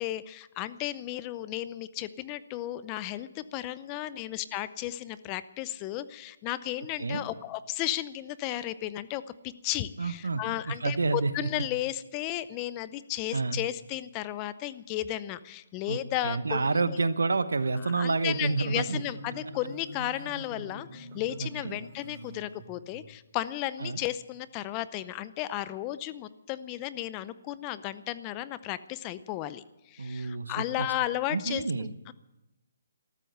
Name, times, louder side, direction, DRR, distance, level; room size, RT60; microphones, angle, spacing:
voice 1, 0.0-17.0 17.8-31.6 32.1-32.2, left 14 dB, 25° left, 15 dB, 0.6 m, -34 dB
voice 2, 10.0-11.5 13.3-13.6 15.9-16.0 16.2-19.0 21.4-21.8 23.8-24.0 30.0-30.9 31.3-31.9, right 3 dB, 90° right, 13 dB, 1.1 m, -29 dB
Marimba xylophone, 17.9-23.1, equal, 25° right, 4.8 m, -45 dB
13.5 x 13.5 x 7.9 m, 0.93 s
hypercardioid pair, 155°, 0 cm